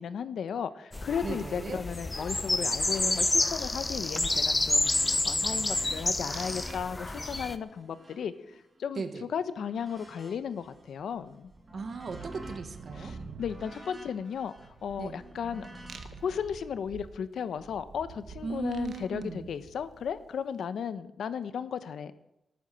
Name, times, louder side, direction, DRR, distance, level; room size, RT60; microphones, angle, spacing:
voice 1, 0.0-11.5 12.9-14.5 14.8-15.7 16.2-22.3, left 7 dB, 85° left, 13 dB, 1.1 m, -35 dB
sound 1, 0.9-7.5, left 2 dB, 15° left, 0.8 m, -29 dB
voice 2, 1.2-1.8 8.9-9.2 11.7-13.1 15.0-15.2 18.4-19.5, right 4 dB, 45° right, 9 dB, 1.7 m, -37 dB
sound 2, 2.8-3.2 3.5-4.0 4.3-9.1 9.6-10.9 11.3-16.4, right 1 dB, 20° right, 5.9 m, -52 dB
sound 3, 6.3-6.8 7.1-7.6 10.0-10.1 10.4-20.4, right 4 dB, 65° right, 1.8 m, -48 dB
19.0 x 9.3 x 7.7 m, 0.87 s
wide cardioid pair, 165°, 0 cm